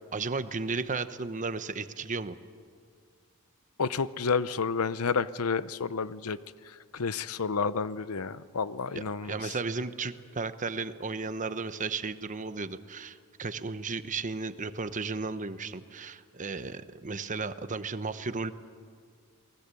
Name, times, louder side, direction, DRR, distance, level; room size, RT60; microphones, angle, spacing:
voice 1, 0.1-2.4 8.9-18.5, right 4 dB, 35° right, 12 dB, 0.9 m, -34 dB
voice 2, 3.8-6.4 6.9-9.4, left 5 dB, 90° left, 16 dB, 0.7 m, -30 dB
29.0 x 19.5 x 8.4 m, 2.1 s
head